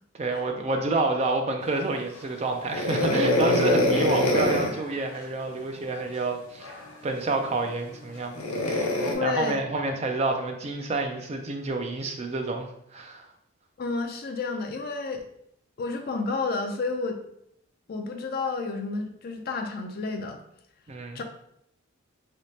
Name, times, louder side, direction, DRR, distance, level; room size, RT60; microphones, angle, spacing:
voice 1, 0.2-6.7 7.0-8.9 9.2-13.3 20.9-21.2, right 2 dB, 30° right, 4 dB, 0.4 m, -29 dB
sound 1, 2.7-4.8 6.6-6.8 8.3-9.1, left 1 dB, 90° left, 0.6 m, -23 dB
voice 2, 9.0-9.6 13.8-15.2 15.8-17.2 17.9-20.4 21.1-21.2, left 3 dB, 45° left, 4 dB, 0.4 m, -31 dB
3.3 x 2.9 x 2.7 m, 0.73 s
head